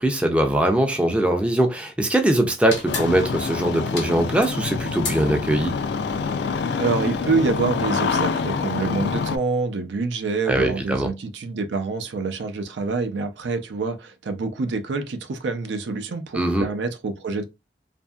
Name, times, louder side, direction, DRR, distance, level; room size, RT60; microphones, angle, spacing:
voice 1, 0.0-5.7 10.5-11.1 16.3-16.7, right 1 dB, 5° right, 0.4 m, -21 dB
sound 1, 2.7-8.2, left 4 dB, 90° left, 0.9 m, -36 dB
Engine starting, 2.9-9.4, left 5 dB, 70° left, 0.3 m, -26 dB
voice 2, 6.8-17.4, right 4 dB, 85° right, 0.5 m, -26 dB
2.7 x 2.5 x 2.3 m
head